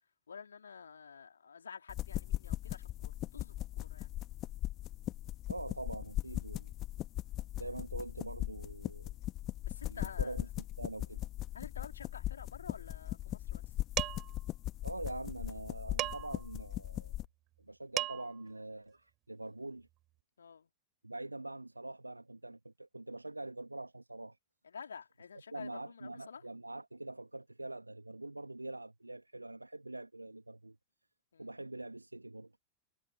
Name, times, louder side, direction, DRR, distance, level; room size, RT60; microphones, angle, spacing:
voice 1, 0.3-4.1 9.6-10.4 11.5-13.6 20.4-20.7 24.6-26.4 31.3-31.6, left 6 dB, 70° left, 3.5 m, -50 dB
sound 1, 1.9-17.3, left 14 dB, 35° left, 1.5 m, -39 dB
voice 2, 5.5-6.7 7.6-9.1 9.9-11.2 14.8-17.2 17.6-19.9 21.0-24.4 25.5-30.8 31.4-32.5, right 2 dB, 85° right, 2.4 m, -44 dB
Dishes pots and pans, 14.0-14.4 16.0-16.5 17.6-17.7 18.0-18.4, right 16 dB, 35° right, 3.4 m, -36 dB
figure-of-eight pair, 90°, 0 cm